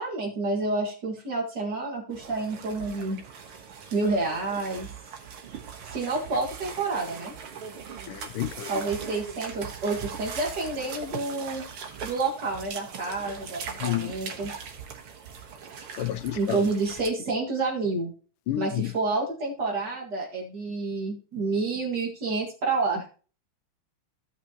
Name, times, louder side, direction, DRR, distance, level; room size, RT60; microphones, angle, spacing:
voice 1, 0.0-3.2 3.9-4.9 5.9-7.3 8.7-11.7 12.0-14.5 16.3-18.1 18.5-23.0, right 3 dB, 55° right, 2.6 m, -29 dB
sound 1, 2.1-17.1, right 6 dB, 85° right, 2.2 m, -40 dB
voice 2, 8.1-8.7 13.8-14.1 16.0-16.6 18.5-18.9, left 14 dB, 85° left, 1.4 m, -30 dB
15.0 x 5.8 x 2.9 m
omnidirectional pair, 2.3 m